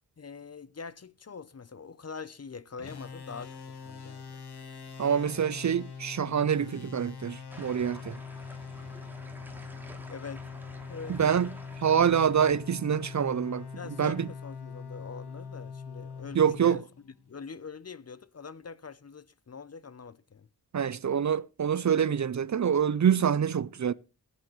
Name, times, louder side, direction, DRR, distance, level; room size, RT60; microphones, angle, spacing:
voice 1, 0.2-4.4 10.1-10.5 10.9-11.2 13.8-16.8 17.3-20.5, left 5 dB, 40° left, 0.7 m, -44 dB
sound 1, 2.8-17.3, left 5 dB, 80° left, 1.6 m, -43 dB
voice 2, 5.0-8.2 11.1-11.5 11.8-14.3 16.3-16.8 20.7-23.9, right 8 dB, 45° right, 0.5 m, -26 dB
sound 2, 7.5-12.6, equal, 5° right, 2.7 m, -49 dB
17.0 x 9.3 x 3.1 m
cardioid pair, 45°, 39 cm